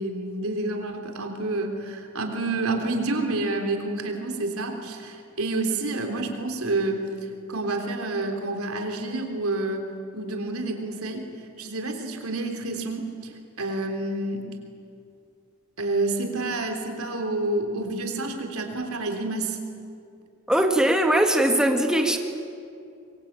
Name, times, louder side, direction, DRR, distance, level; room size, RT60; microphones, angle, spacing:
voice 1, 0.0-7.1 7.5-11.2 11.6-13.3 13.6-14.4 15.8-19.6, right 2 dB, 85° right, 4 dB, 3.6 m, -29 dB
voice 2, 20.5-22.2, right 1 dB, 5° right, 4 dB, 1.9 m, -20 dB
25.5 x 23.0 x 8.8 m, 2.5 s
head